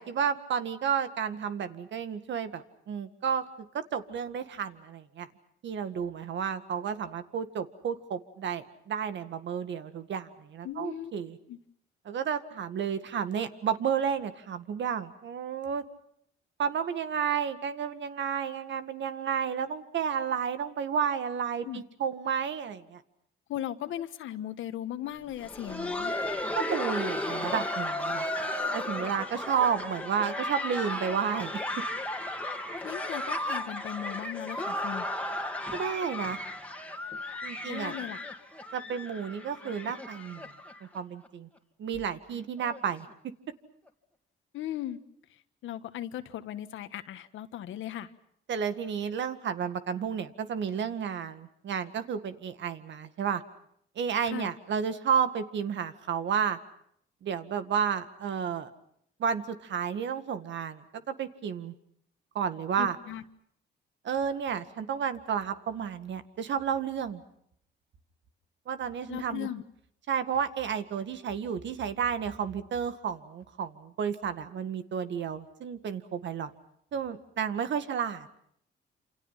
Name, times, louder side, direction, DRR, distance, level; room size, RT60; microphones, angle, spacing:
voice 1, 0.0-3.5 3.7-5.3 5.6-11.4 12.1-15.8 16.6-23.0 26.6-28.3 28.7-31.6 35.7-36.4 37.4-37.9 38.7-40.5 40.8-41.5 41.8-43.1 48.5-53.4 54.0-56.6 57.2-58.7 59.2-61.7 62.3-63.0 64.0-67.2 68.7-69.5 70.1-76.5 76.9-78.3, right 7 dB, 65° right, 10 dB, 1.9 m, -31 dB
voice 2, 10.6-11.1 11.5-11.6 21.6-21.8 23.5-26.1 32.8-35.0 37.6-38.3 44.5-45.0 45.6-48.1 54.2-54.5 62.8-63.2 69.1-69.6, left 12 dB, 80° left, 11 dB, 1.5 m, -37 dB
Laughter, 25.3-41.0 41.2-41.3 41.9-42.1 42.6-42.8 43.9-44.0, left 1 dB, 5° left, 2.5 m, -34 dB
28.0 x 28.0 x 5.8 m, 0.71 s
cardioid pair, 90°, 20 cm